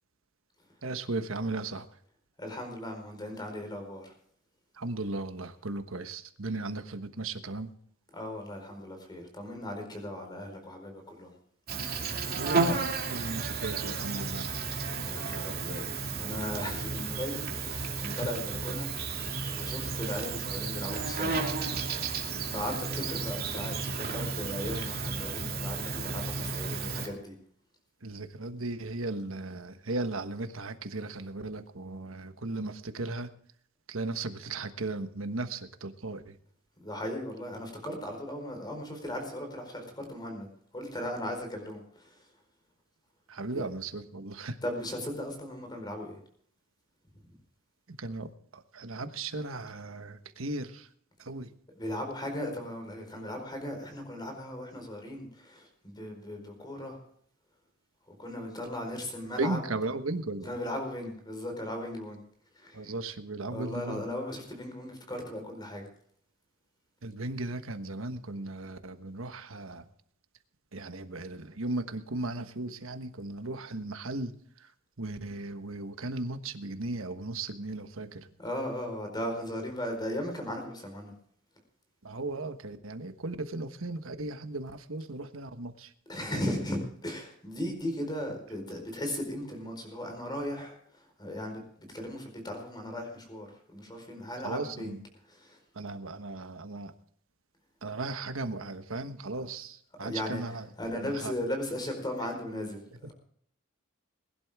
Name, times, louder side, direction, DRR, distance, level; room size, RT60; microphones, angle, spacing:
voice 1, 0.8-1.9 4.7-7.7 12.3-12.8 13.1-14.5 18.1-18.3 28.0-33.3 33.9-36.4 43.3-44.6 47.9-50.9 51.2-51.5 59.4-60.5 62.7-64.0 67.0-69.8 70.7-74.7 75.0-78.3 82.0-85.9 86.3-86.6 94.4-95.0 95.7-96.9 97.8-100.7 100.9-101.3 103.0-103.1, right 2 dB, 75° right, 8 dB, 1.3 m, -36 dB
voice 2, 2.4-4.1 8.1-11.3 15.0-18.9 19.2-21.4 22.5-27.3 36.8-40.5 40.7-42.2 43.5-43.6 44.6-46.2 51.7-57.0 58.1-59.6 60.4-62.2 62.6-62.9 63.5-65.9 78.4-81.1 86.1-90.8 91.2-91.6 91.9-95.0 95.3-95.6 100.0-100.4 100.8-102.8, left 1 dB, 20° left, 4 dB, 4.5 m, -37 dB
Insect, 11.7-27.1, right 4 dB, 50° right, 2.7 m, -33 dB
21.5 x 11.5 x 3.6 m, 0.64 s
head